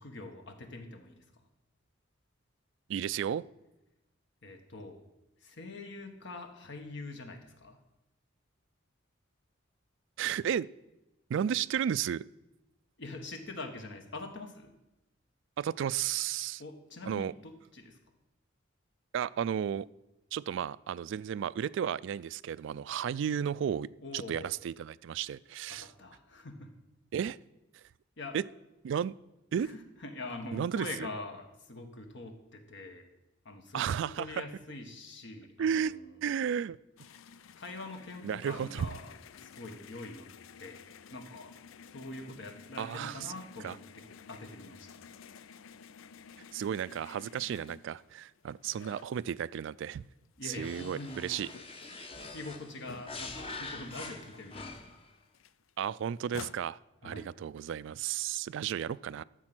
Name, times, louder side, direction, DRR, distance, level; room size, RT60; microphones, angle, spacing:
voice 1, 0.0-1.5 4.4-5.0 5.4-7.8 13.0-14.7 16.6-18.0 24.0-24.5 25.7-26.7 28.2-28.4 29.5-33.1 33.4-36.1 37.5-40.3 40.6-41.5 41.8-45.0 50.4-51.3 52.2-54.9 57.0-57.3, left 2 dB, 65° left, 6 dB, 1.4 m, -44 dB
voice 2, 2.9-3.4 10.2-10.7 11.3-12.2 15.6-16.6 17.0-17.3 19.1-19.9 20.3-23.9 24.1-25.9 27.1-27.4 28.3-28.4 28.8-29.1 29.5-29.7 30.5-31.1 33.7-34.4 35.6-35.9 36.2-36.8 38.2-38.9 42.8-43.3 43.6-43.8 46.5-50.1 50.4-51.5 55.8-56.8 57.0-59.2, right 8 dB, 65° right, 19 dB, 0.3 m, -33 dB
sound 1, 37.0-49.8 50.2-53.6 53.9-54.0 54.2-56.6, left 6 dB, 90° left, 0.4 m, -52 dB
sound 2, 50.5-55.1, left 3 dB, 30° left, 1.0 m, -44 dB
13.0 x 6.7 x 6.0 m, 0.95 s
head